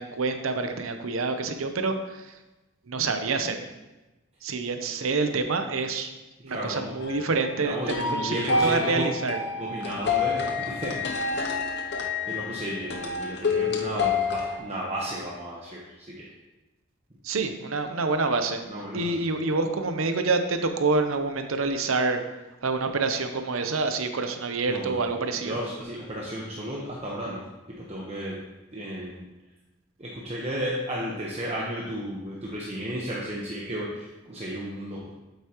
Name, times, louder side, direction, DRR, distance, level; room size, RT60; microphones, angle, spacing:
voice 1, 0.0-2.3 2.9-3.6 4.4-6.1 6.4-9.4 17.2-18.6 18.9-22.2 22.6-25.6, right 3 dB, 85° right, 7 dB, 0.8 m, -27 dB
voice 2, 6.5-7.0 7.6-9.1 9.6-11.4 12.2-16.3 18.7-19.2 24.7-25.1 25.4-28.4 28.7-29.3 30.0-35.1, equal, 30° right, -5 dB, 1.1 m, -33 dB
sound 1, 7.0-14.6, left 4 dB, 55° left, 0.7 m, -28 dB
8.2 x 8.2 x 3.0 m, 1.1 s
head